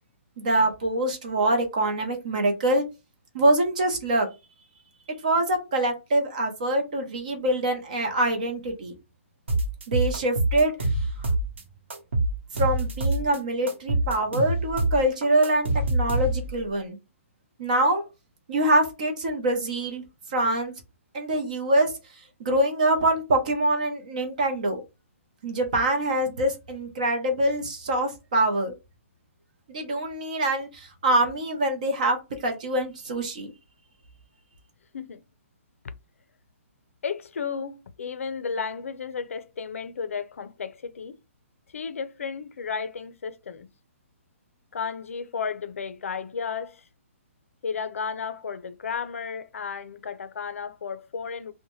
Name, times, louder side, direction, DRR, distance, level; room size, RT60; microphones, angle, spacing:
voice 1, 0.4-2.8 3.3-4.3 5.1-8.9 9.9-10.8 11.2-11.3 12.5-17.0 17.6-18.0 18.5-20.0 20.3-20.7 21.1-21.9 22.4-24.8 25.4-28.7 29.7-32.2 32.4-33.5, right 1 dB, 35° right, 0.7 m, -24 dB
sound 1, 9.5-11.6 11.9-13.4 13.7-16.6, right 2 dB, 55° right, 1.0 m, -25 dB
voice 2, 37.0-41.2 41.7-43.7 44.7-46.8 47.6-51.5, left 6 dB, 70° left, 0.5 m, -33 dB
2.7 x 2.1 x 3.0 m
hypercardioid pair, 180°, 8 cm